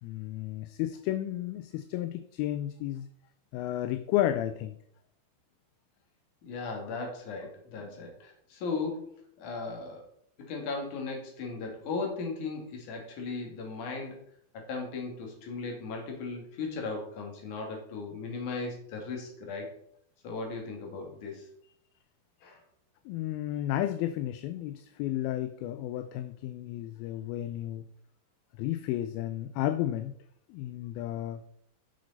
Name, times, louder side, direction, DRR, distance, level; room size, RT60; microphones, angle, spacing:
voice 1, 0.0-3.1 3.5-4.8 7.8-7.9 23.1-27.9 28.6-30.1 30.5-31.4, left 13 dB, 80° left, 11 dB, 2.3 m, -32 dB
voice 2, 6.4-10.0 10.5-14.2 14.5-19.7 20.2-21.5 22.4-22.6, left 4 dB, 55° left, 1 dB, 3.2 m, -37 dB
10.5 x 6.5 x 4.0 m, 0.68 s
omnidirectional pair, 4.5 m